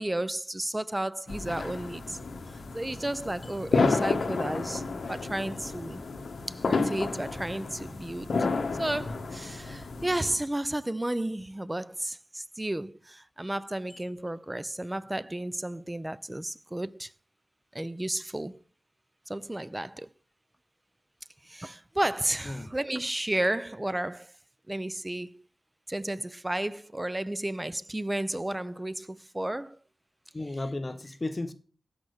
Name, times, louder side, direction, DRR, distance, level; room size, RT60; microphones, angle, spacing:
voice 1, 0.0-2.2 2.5-6.0 6.5-8.3 8.8-17.1 17.7-18.6 19.3-20.1 21.4-24.3 24.7-25.4 25.9-29.8, right 1 dB, 10° right, 0.4 m, -33 dB
sound 1, 1.3-10.4, left 4 dB, 65° left, 1.2 m, -31 dB
voice 2, 30.3-31.5, left 2 dB, 25° left, 0.8 m, -34 dB
8.5 x 5.2 x 6.4 m
wide cardioid pair, 145°, 0 cm